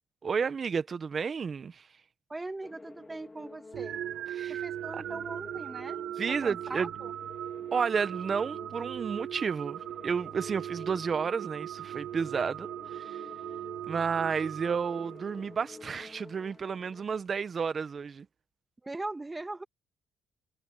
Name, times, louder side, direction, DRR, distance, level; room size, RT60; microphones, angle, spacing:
voice 1, 0.2-1.9 4.3-4.6 6.2-6.9 7.7-13.2 13.9-18.3, right 6 dB, 45° right, 1.3 m, -31 dB
voice 2, 2.3-4.0 4.5-7.1 18.8-19.6, right 2 dB, 15° right, 2.1 m, -40 dB
sound 1, 2.6-17.0, left 3 dB, 25° left, 4.1 m, -51 dB
sound 2, 3.7-15.7, right 11 dB, 75° right, 0.6 m, -39 dB
cardioid pair, 90°, 0 cm